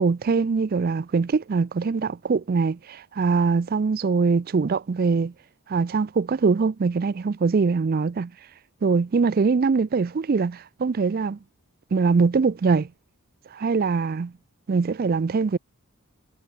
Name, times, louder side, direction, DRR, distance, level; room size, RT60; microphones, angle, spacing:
voice 1, 0.0-5.3 5.7-8.3 8.8-11.4 11.9-12.9 13.5-14.3 14.7-15.6, right 4 dB, 40° right, 0.4 m, -22 dB
head